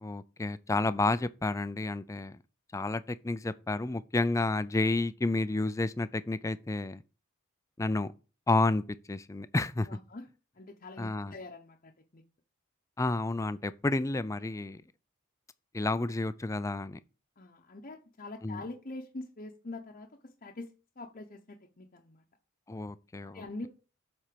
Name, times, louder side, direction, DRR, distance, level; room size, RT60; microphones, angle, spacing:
voice 1, 0.0-2.4 2.7-7.0 7.8-8.1 8.5-8.8 9.1-9.9 11.0-11.3 13.0-14.8 15.7-17.0 18.4-18.6 22.7-23.4, left 2 dB, 15° left, 0.3 m, -30 dB
voice 2, 9.9-10.3 10.5-12.2 17.4-20.7 21.0-22.2 23.3-23.7, left 2 dB, 40° left, 0.8 m, -44 dB
7.6 x 4.3 x 6.8 m
head